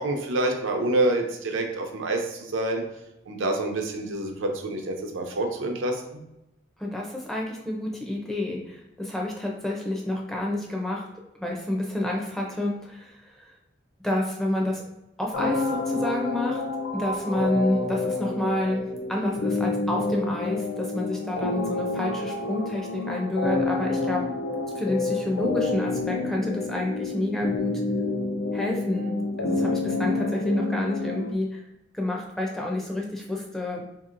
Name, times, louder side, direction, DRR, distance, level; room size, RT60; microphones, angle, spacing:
voice 1, 0.0-2.8 3.3-6.2, right 2 dB, 90° right, 3 dB, 0.5 m, -27 dB
voice 2, 6.8-11.1 11.4-13.5 14.0-14.8 15.2-16.6 16.9-18.8 19.1-24.3 24.8-27.8 28.5-29.1 29.4-31.6 31.9-33.8, left 1 dB, ahead, -1 dB, 0.4 m, -29 dB
sound 1, 15.3-31.3, left 3 dB, 80° left, 0.4 m, -28 dB
3.6 x 2.8 x 2.5 m, 0.91 s
head